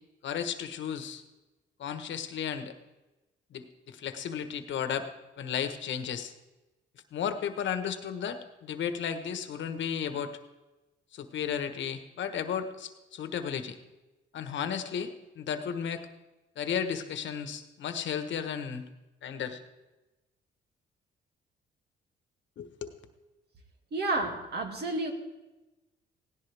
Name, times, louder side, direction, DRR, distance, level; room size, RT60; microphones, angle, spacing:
voice 1, 0.2-1.2 1.8-2.7 3.5-5.1 5.4-6.3 7.1-10.4 11.1-13.8 14.3-16.0 16.6-18.8 19.2-19.6 22.6-22.9, left 8 dB, 70° left, 8 dB, 1.3 m, -34 dB
voice 2, 23.9-25.1, right 2 dB, 55° right, 3 dB, 2.4 m, -30 dB
17.0 x 17.0 x 3.5 m, 1.1 s
cardioid pair, 90°, 20 cm